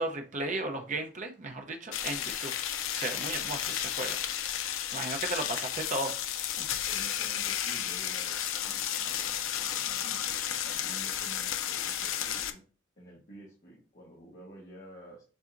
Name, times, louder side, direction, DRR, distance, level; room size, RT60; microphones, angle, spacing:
voice 1, 0.0-2.5 2.9-4.2 4.9-6.1 6.6-6.7, right 2 dB, 35° right, 0.7 m, -35 dB
sound 1, 1.9-12.5, left 10 dB, 75° left, 0.5 m, -33 dB
voice 2, 6.9-12.6 13.0-15.2, right 1 dB, 45° left, 1.4 m, -50 dB
7.2 x 2.7 x 2.5 m
head